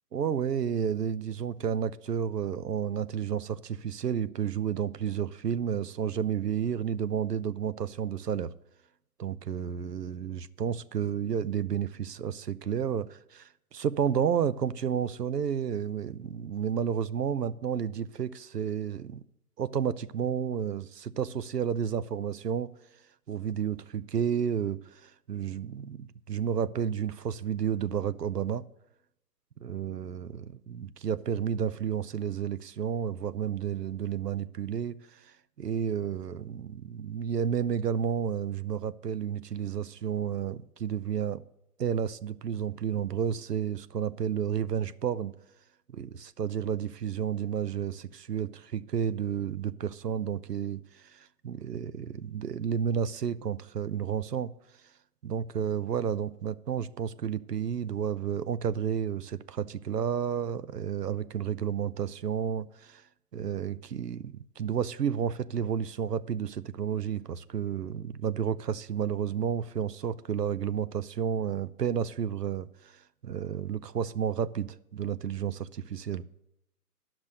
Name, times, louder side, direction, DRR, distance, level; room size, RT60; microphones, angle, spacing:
voice 1, 0.1-8.5 9.2-19.2 19.6-22.7 23.3-28.6 29.6-35.3 35.6-41.4 41.8-45.3 45.9-54.5 55.2-63.0 63.3-76.3, right 8 dB, 80° right, 0.6 m, -31 dB
11.0 x 6.1 x 6.4 m
figure-of-eight pair, 125°, 47 cm